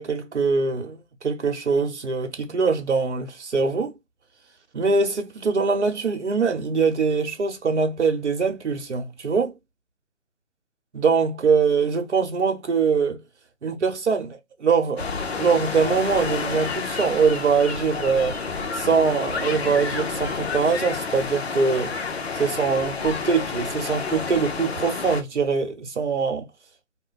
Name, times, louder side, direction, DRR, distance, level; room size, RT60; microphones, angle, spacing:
voice 1, 0.0-3.9 4.7-9.5 10.9-13.2 13.6-15.1 15.4-18.4 18.7-21.9 22.3-26.5, right 5 dB, 60° right, 1.0 m, -23 dB
sound 1, 15.0-25.2, left 5 dB, 55° left, 0.6 m, -30 dB
2.5 x 2.1 x 3.9 m
hypercardioid pair, 170°, 38 cm